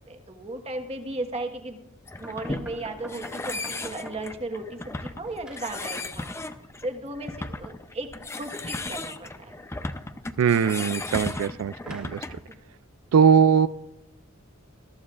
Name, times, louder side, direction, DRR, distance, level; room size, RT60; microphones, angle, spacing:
voice 1, 0.1-1.8 2.2-6.3 6.8-8.1 8.4-9.5 12.5-12.6, right 2 dB, 30° right, 5 dB, 1.3 m, -35 dB
sound 1, 2.1-12.5, left 2 dB, 15° left, 0.5 m, -35 dB
sound 2, 2.2-4.4 4.8-5.7 11.4-12.2, equal, 5° right, 1.8 m, -46 dB
voice 2, 10.4-12.2 13.1-13.7, right 7 dB, 80° right, 14 dB, 0.3 m, -20 dB
21.0 x 14.0 x 2.5 m, 0.98 s
head